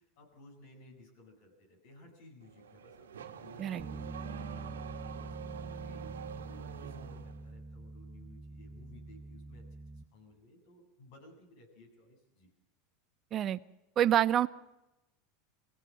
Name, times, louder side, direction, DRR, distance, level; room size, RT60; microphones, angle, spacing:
voice 1, 0.0-9.6 9.9-12.5, left 2 dB, 65° left, 2 dB, 7.9 m, -58 dB
Car / Accelerating revving vroom, 2.4-7.4, right 8 dB, 90° right, 1.6 m, -46 dB
Bass guitar, 3.8-10.0, right 3 dB, 20° right, 1.2 m, -45 dB
voice 2, 14.0-14.5, right 11 dB, 40° right, 13 dB, 0.6 m, -26 dB
23.5 x 16.5 x 7.8 m, 0.95 s
hypercardioid pair, 95°, 0 cm